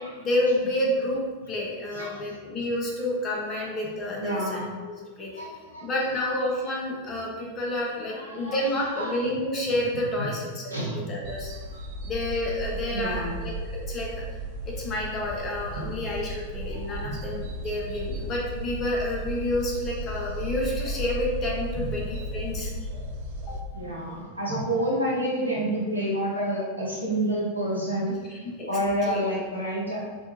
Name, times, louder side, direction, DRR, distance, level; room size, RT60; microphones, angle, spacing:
voice 1, 0.2-5.4 5.8-10.7 11.1-11.5 12.0-14.1 14.7-22.7 23.5-23.6 28.3-28.7 29.1-29.2, left 1 dB, 30° left, -3 dB, 0.7 m, -29 dB
voice 2, 1.9-2.3 3.5-3.7 4.1-4.7 5.3-5.9 6.1-6.3 8.0-8.6 8.9-9.2 10.2-10.3 10.7-11.0 11.7-11.8 12.9-13.4 16.7-17.2 21.8-21.9 23.7-28.2 28.7-30.0, right 1 dB, 85° right, -5 dB, 0.7 m, -29 dB
sound 1, 11.2-23.6, right 1 dB, 50° right, 0.3 m, -35 dB
2.6 x 2.3 x 2.9 m, 1.5 s
figure-of-eight pair, 90°, 0 cm